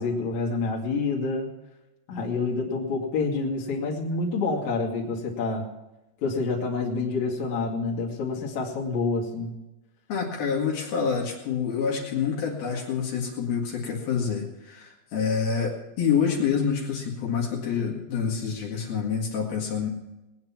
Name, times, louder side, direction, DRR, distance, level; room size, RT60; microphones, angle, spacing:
voice 1, 0.0-1.5 2.1-5.7 6.2-9.5, left 3 dB, 50° left, -1 dB, 3.4 m, -28 dB
voice 2, 10.1-19.9, left 6 dB, 65° left, -2 dB, 3.7 m, -27 dB
20.5 x 9.5 x 5.9 m, 0.97 s
omnidirectional pair, 4.9 m